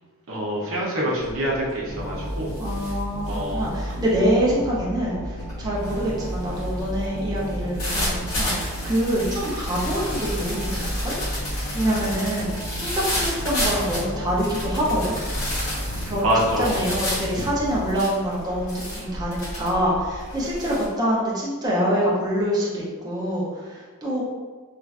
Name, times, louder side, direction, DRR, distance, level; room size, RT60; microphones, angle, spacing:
voice 1, 0.3-2.5 3.2-3.7 16.2-16.8, equal, 60° right, -4 dB, 0.8 m, -25 dB
sound 1, 1.2-1.6 1.9-20.9, left 1 dB, 70° left, 1.5 m, -32 dB
sound 2, 1.9-18.3, equal, 45° left, 0.7 m, -33 dB
voice 2, 2.6-11.1 11.7-15.1 16.1-24.2, equal, 15° right, -6 dB, 0.5 m, -25 dB
3.2 x 2.4 x 2.4 m, 1.4 s
head